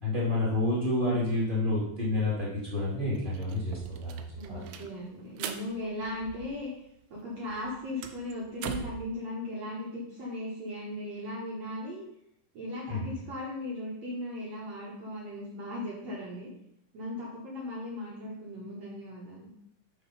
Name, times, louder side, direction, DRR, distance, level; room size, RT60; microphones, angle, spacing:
voice 1, 0.0-4.2 4.5-4.6 12.9-13.1, left 2 dB, 15° right, -7 dB, 2.0 m, -29 dB
sound 1, 2.6-2.7 3.0-6.9 7.2-9.1, right 9 dB, 85° right, 2.4 m, -42 dB
voice 2, 4.4-6.7 7.1-12.0 12.5-16.5 16.9-19.5, left 1 dB, 55° right, -6 dB, 2.4 m, -37 dB
6.4 x 5.5 x 5.6 m, 0.76 s
omnidirectional pair, 4.1 m